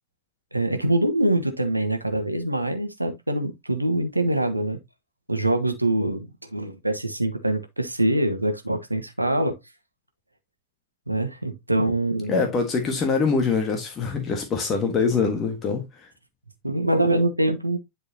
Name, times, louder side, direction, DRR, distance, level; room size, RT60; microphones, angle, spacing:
voice 1, 0.5-4.8 5.3-9.5 11.1-12.4 16.6-17.8, right 1 dB, 85° right, 1.4 m, -24 dB
voice 2, 12.3-16.1, left 5 dB, 25° left, 1.5 m, -24 dB
10.5 x 4.7 x 2.8 m
figure-of-eight pair, 90°, 0 cm